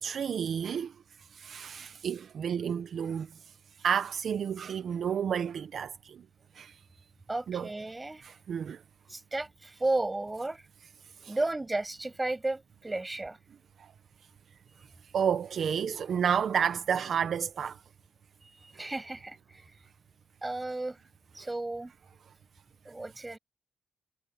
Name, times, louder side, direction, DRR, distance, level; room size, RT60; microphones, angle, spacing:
voice 1, 0.0-0.9 1.3-3.3 3.8-6.2 6.5-6.8 7.5-7.7 8.2-8.8 11.2-11.3 13.8-13.9 15.1-17.8, right 7 dB, 60° right, 1.0 m, -31 dB
voice 2, 7.3-8.3 9.1-10.7 11.3-13.4 18.6-19.6 20.4-21.0 21.3-21.9 22.8-23.4, right 2 dB, 15° right, 6.7 m, -33 dB
cardioid pair, 110°, 0 cm